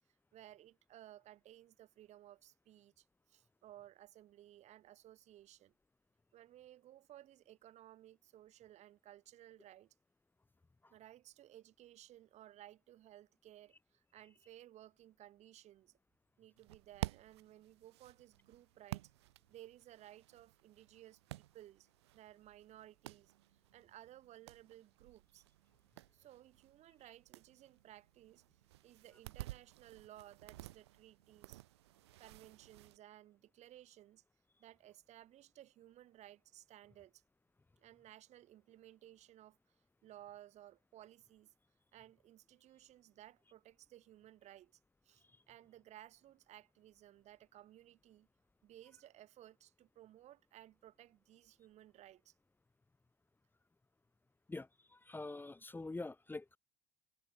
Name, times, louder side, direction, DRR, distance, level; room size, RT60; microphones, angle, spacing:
voice 1, 0.3-5.7 6.3-9.9 10.9-16.0 16.4-19.1 19.5-25.4 26.1-31.6 32.2-34.2 34.6-37.2 37.8-39.8 40.0-41.5 41.9-48.3 48.6-52.3, right 13 dB, 55° right, 2.3 m, -59 dB
sound 1, 16.6-33.0, right 16 dB, 85° right, 3.1 m, -52 dB
voice 2, 54.5-56.6, left 2 dB, 15° left, 1.3 m, -45 dB
hypercardioid pair, 75°, 14 cm